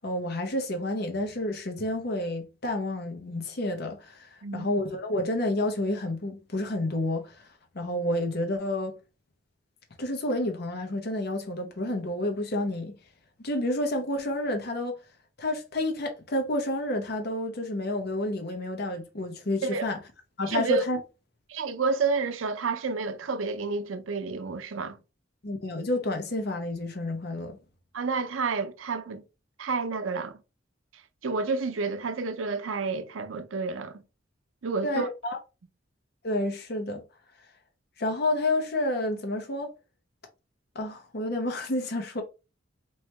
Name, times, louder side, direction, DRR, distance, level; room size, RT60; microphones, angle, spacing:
voice 1, 0.0-7.5 7.7-8.9 10.0-13.0 13.4-15.0 15.4-20.0 20.4-21.0 25.4-27.6 34.8-35.4 36.2-37.0 38.0-39.7 40.7-42.2, left 1 dB, 55° left, 0.8 m, -30 dB
voice 2, 20.4-20.8 21.5-25.0 27.9-29.2 29.6-30.4 31.2-34.0 34.6-35.1, right 4 dB, 85° right, 0.6 m, -30 dB
3.1 x 2.8 x 4.5 m
head